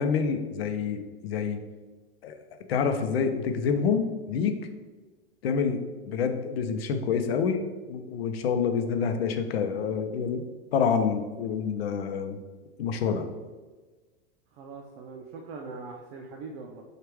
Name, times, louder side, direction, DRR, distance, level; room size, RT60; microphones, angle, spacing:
voice 1, 0.0-1.6 2.2-2.4 2.7-4.6 5.4-7.6 7.9-10.4 10.7-12.4 12.8-13.3, left 6 dB, 85° left, 7 dB, 0.6 m, -27 dB
voice 2, 14.5-16.8, right 4 dB, 50° right, 1 dB, 0.6 m, -41 dB
4.6 x 2.4 x 4.6 m, 1.3 s
hypercardioid pair, 120°, 30 cm